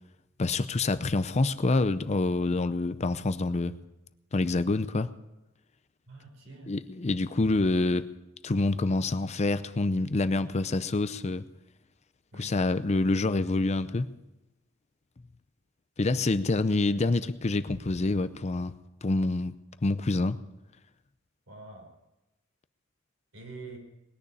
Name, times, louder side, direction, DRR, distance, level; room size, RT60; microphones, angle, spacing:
voice 1, 0.4-3.7 4.3-5.1 6.7-8.1 8.4-11.4 12.4-14.1 16.0-19.6 19.8-20.4, left 2 dB, 35° left, 13 dB, 0.6 m, -27 dB
voice 2, 6.1-6.7 12.3-12.6 21.5-21.9 23.3-23.8, right 3 dB, 75° right, 2 dB, 5.0 m, -45 dB
20.5 x 6.9 x 9.9 m, 0.95 s
head